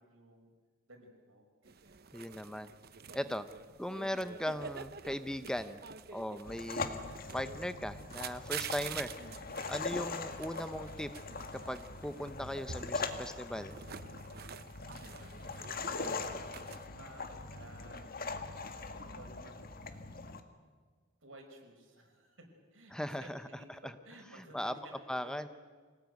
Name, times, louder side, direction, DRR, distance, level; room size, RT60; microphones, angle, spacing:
voice 1, 0.1-0.5 0.9-2.0 15.1-18.4 19.1-19.6 21.2-25.5, right 1 dB, 80° right, 3 dB, 5.5 m, -55 dB
sound 1, 1.6-16.9, right 7 dB, 50° right, 0.9 m, -48 dB
voice 2, 2.1-2.7 3.1-3.5 3.8-5.8 6.1-7.0 7.3-9.1 9.7-11.1 11.5-13.7 22.9-23.4 23.7-23.9 24.4-24.7 25.1-25.5, equal, 5° left, 11 dB, 0.7 m, -38 dB
sound 2, 6.4-20.4, left 4 dB, 45° left, 1.8 m, -41 dB
25.5 x 18.0 x 9.3 m, 1.5 s
head